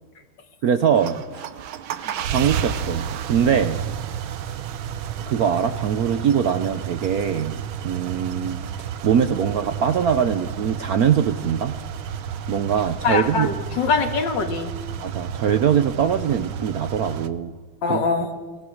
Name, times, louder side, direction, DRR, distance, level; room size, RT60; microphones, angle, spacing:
voice 1, 0.6-1.4 2.0-3.8 5.3-8.6 9.0-11.8 12.5-13.5 15.0-17.5 17.9-18.0, right 8 dB, 60° right, 10 dB, 1.0 m, -22 dB
sound 1, 0.8-17.3, right 8 dB, 75° right, 1.7 m, -31 dB
voice 2, 13.0-14.7 17.8-18.3, left 4 dB, 60° left, 6 dB, 2.3 m, -23 dB
23.0 x 18.0 x 6.5 m, 1.4 s
omnidirectional pair, 2.2 m